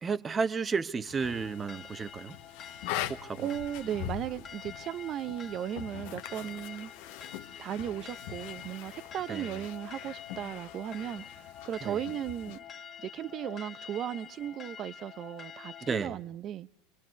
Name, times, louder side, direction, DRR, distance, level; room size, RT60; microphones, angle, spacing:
voice 1, 0.0-2.4 3.1-3.5 9.3-9.5 11.8-12.0 15.8-16.2, right 5 dB, 20° right, 1.1 m, -32 dB
sound 1, 1.1-12.6, left 13 dB, 65° left, 1.2 m, -43 dB
sound 2, 1.2-16.0, left 7 dB, 25° left, 1.5 m, -47 dB
voice 2, 3.4-6.9 7.6-12.6 13.0-16.7, right 10 dB, 40° right, 0.8 m, -36 dB
28.0 x 23.0 x 4.7 m
supercardioid pair, 120°, 0 cm